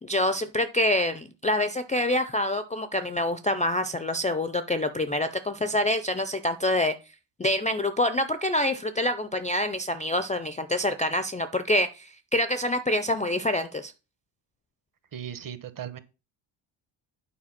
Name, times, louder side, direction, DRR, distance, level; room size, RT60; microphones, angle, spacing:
voice 1, 0.0-6.9 7.4-13.9, left 1 dB, 15° left, 11 dB, 0.3 m, -26 dB
voice 2, 15.1-16.0, right 9 dB, 45° right, 12 dB, 1.0 m, -37 dB
8.8 x 4.6 x 5.7 m, 0.31 s
cardioid pair, 155°, 48 cm